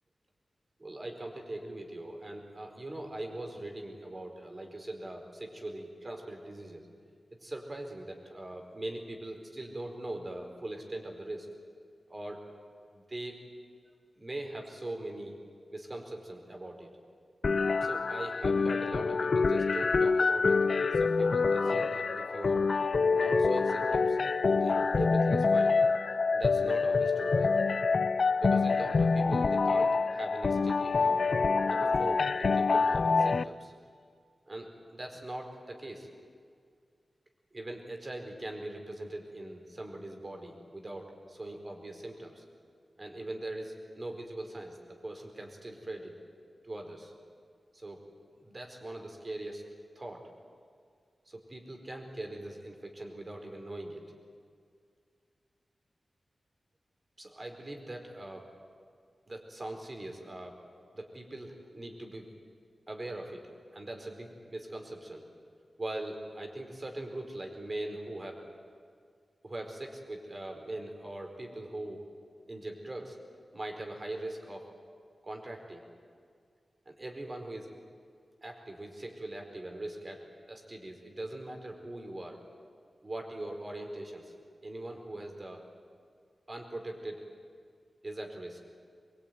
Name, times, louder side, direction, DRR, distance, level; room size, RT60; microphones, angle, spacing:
voice 1, 0.8-6.9 7.4-11.5 12.1-12.4 12.9-13.4 14.2-15.3 15.7-16.9 17.8-20.6 20.9-22.7 23.1-24.2 24.5-25.9 26.3-27.5 28.4-31.4 31.7-33.7 34.5-36.1 37.5-42.4 43.0-46.1 46.6-47.1 47.7-48.0 48.4-49.7 49.9-50.3 51.3-54.0 57.2-58.5 59.3-60.6 60.9-62.3 62.9-63.4 63.7-65.2 65.8-68.4 69.4-72.0 72.5-73.2 73.5-74.7 75.2-75.9 76.9-77.7 78.4-82.4 83.0-84.3 84.6-85.6 86.5-87.2 88.0-88.6, right 1 dB, 30° right, 3 dB, 4.4 m, -41 dB
sound 1, 17.4-33.4, left 4 dB, 60° left, 0.6 m, -26 dB
23.5 x 23.0 x 9.4 m, 2.1 s
wide cardioid pair, 100°, 0 cm